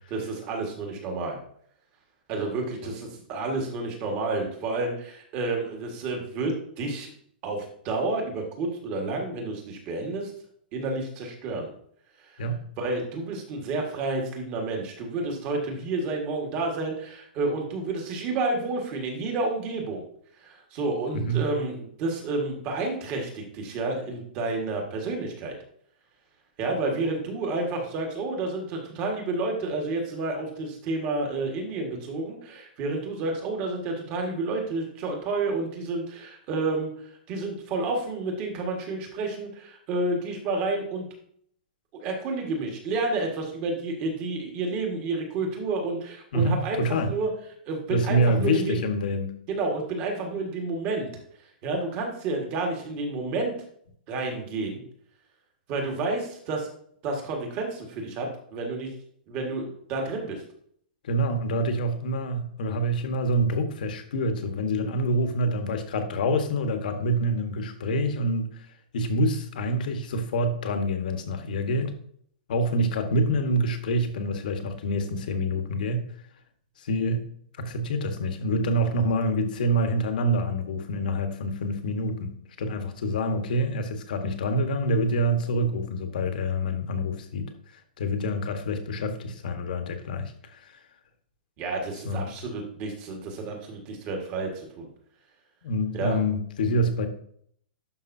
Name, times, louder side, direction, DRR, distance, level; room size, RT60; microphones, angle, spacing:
voice 1, 0.1-1.4 2.3-7.1 7.4-10.3 10.7-11.7 12.2-12.4 12.8-20.0 20.4-25.5 26.6-36.9 37.3-41.1 41.9-47.3 47.7-48.8 49.5-51.1 51.6-53.5 54.1-54.8 55.7-56.7 57.0-58.9 59.3-60.4 91.6-94.9 95.9-96.2, right 3 dB, 25° right, 2 dB, 1.7 m, -30 dB
voice 2, 46.3-47.1 47.9-49.3 61.0-68.7 68.9-71.9 72.5-76.0 76.8-77.2 77.6-82.3 82.6-90.8 92.0-92.3 95.6-97.1, equal, 60° left, 6 dB, 1.4 m, -26 dB
11.5 x 5.4 x 2.7 m, 0.63 s
hypercardioid pair, 170°, 5 cm